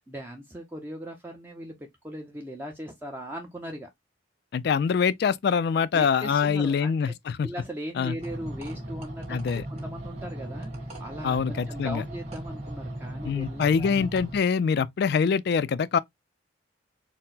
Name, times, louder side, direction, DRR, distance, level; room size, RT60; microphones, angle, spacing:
voice 1, 0.1-3.9 5.9-7.1 7.4-14.1, equal, 10° right, 0.5 m, -39 dB
voice 2, 4.5-7.5 8.0-8.2 9.3-9.6 11.2-12.0 13.2-16.0, left 6 dB, 55° left, 0.3 m, -24 dB
sound 1, 8.2-14.4, right 1 dB, 35° right, 1.7 m, -37 dB
4.3 x 2.1 x 3.9 m
head